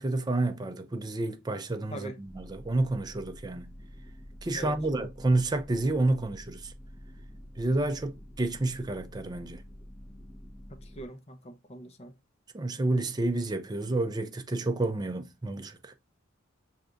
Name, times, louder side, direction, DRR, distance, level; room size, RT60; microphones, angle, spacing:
voice 1, 0.0-3.7 4.4-6.7 7.6-9.6 12.5-15.9, right 2 dB, 20° right, 0.4 m, -29 dB
sound 1, 2.3-11.0, equal, 10° left, 1.2 m, -48 dB
voice 2, 10.8-12.1, equal, 30° left, 0.7 m, -42 dB
5.8 x 3.3 x 2.5 m
head